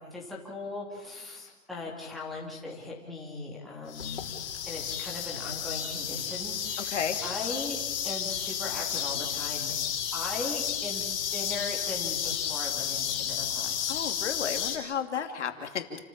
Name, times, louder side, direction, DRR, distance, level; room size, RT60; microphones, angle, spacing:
voice 1, 0.0-4.3 4.7-7.8 8.0-9.7 10.1-14.0 15.1-15.4, left 3 dB, ahead, -5 dB, 3.0 m, -39 dB
sound 1, 3.9-14.8, left 9 dB, 45° left, 4.1 m, -32 dB
voice 2, 13.9-16.0, left 7 dB, 60° left, 6 dB, 2.7 m, -33 dB
30.0 x 14.5 x 8.7 m, 1.1 s
hypercardioid pair, 170°, 39 cm